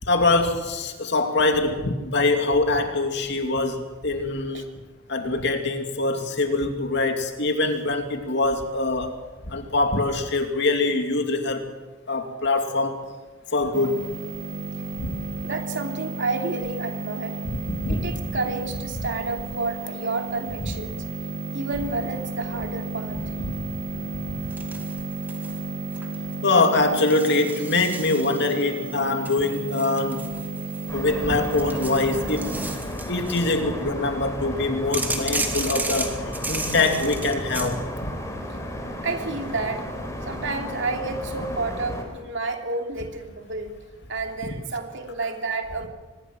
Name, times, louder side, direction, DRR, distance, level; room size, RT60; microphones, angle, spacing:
voice 1, 0.0-4.7 5.1-9.1 9.4-11.7 12.1-13.1 13.5-14.1 15.0-15.1 17.4-18.1 23.1-23.6 23.9-24.4 26.4-30.4 30.9-32.5 32.8-36.2 36.5-38.1, left 2 dB, 55° left, 5 dB, 2.7 m, -24 dB
sound 1, 13.7-32.8, right 3 dB, 40° right, 1.3 m, -33 dB
voice 2, 15.4-17.4 17.9-21.0 21.5-23.2 38.5-38.6 39.0-39.8 40.2-43.7 44.1-45.9, right 3 dB, 60° right, 4 dB, 2.9 m, -30 dB
sound 2, 24.5-25.6 25.9-26.3 27.0-28.6 29.2-31.0 31.4-33.6 34.9-37.7, right 2 dB, 10° right, 2.2 m, -33 dB
sound 3, 30.9-42.0, equal, 15° left, 4.0 m, -33 dB
24.0 x 21.5 x 6.2 m, 1.3 s
head